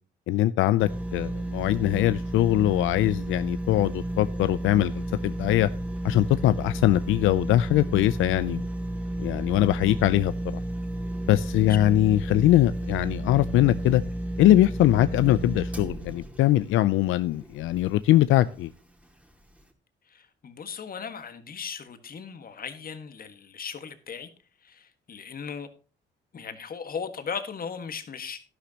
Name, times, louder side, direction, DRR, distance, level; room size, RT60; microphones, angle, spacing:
voice 1, 0.3-5.7 6.0-8.6 9.2-10.3 11.3-14.0 14.4-18.7, left 14 dB, 85° left, 0.5 m, -22 dB
sound 1, 0.8-18.0 18.5-18.6, right 1 dB, 5° right, 2.2 m, -32 dB
voice 2, 20.0-24.3 24.6-25.7 26.3-28.4, left 6 dB, 45° left, 1.6 m, -37 dB
11.5 x 11.5 x 2.9 m
cardioid pair, 90°, 20 cm